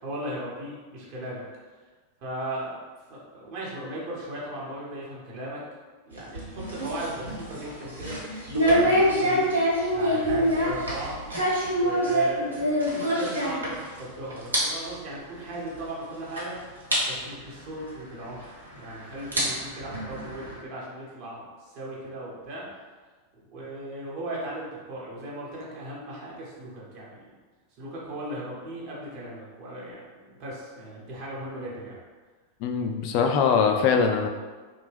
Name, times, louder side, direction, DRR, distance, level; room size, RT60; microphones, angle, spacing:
voice 1, 0.0-1.5 2.2-2.8 3.1-5.6 6.0-8.2 8.5-9.5 9.9-11.2 11.7-16.6 17.1-22.7 23.5-27.3 27.8-31.9, right 1 dB, 40° right, -5 dB, 0.9 m, -37 dB
sound 1, 6.1-14.1 14.3-14.6 14.9-15.0 15.8-15.9 16.4-16.5 16.9-17.0 18.4-18.5 19.1-20.5, equal, 80° right, 0.8 m, -25 dB
voice 2, 32.6-34.3, left 6 dB, 45° left, 4 dB, 0.3 m, -22 dB
2.9 x 2.1 x 3.2 m, 1.4 s
figure-of-eight pair, 90°, 0 cm